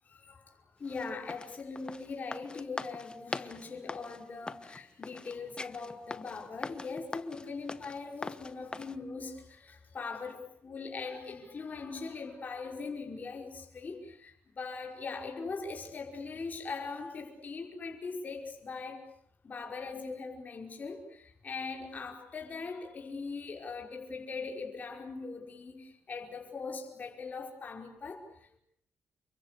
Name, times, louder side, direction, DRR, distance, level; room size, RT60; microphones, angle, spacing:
voice 1, 0.1-0.4 0.8-19.0 19.4-28.2, left 4 dB, 35° left, 1 dB, 5.3 m, -41 dB
sound 1, 0.9-9.0, left 3 dB, 20° left, 1.2 m, -42 dB
29.5 x 24.0 x 8.5 m, 0.71 s
cardioid pair, 145°, 5 cm